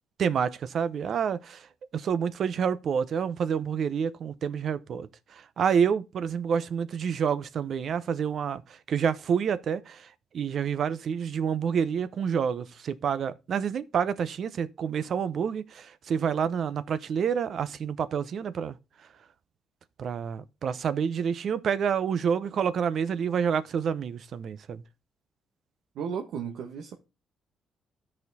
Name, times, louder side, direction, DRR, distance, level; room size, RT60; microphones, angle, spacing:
voice 1, 0.2-1.7 1.9-10.1 10.3-18.8 20.0-24.8, right 7 dB, 60° right, 0.7 m, -28 dB
voice 2, 25.9-27.0, right 7 dB, 80° right, 1.1 m, -34 dB
13.0 x 4.4 x 4.0 m
cardioid pair, 90°, 0 cm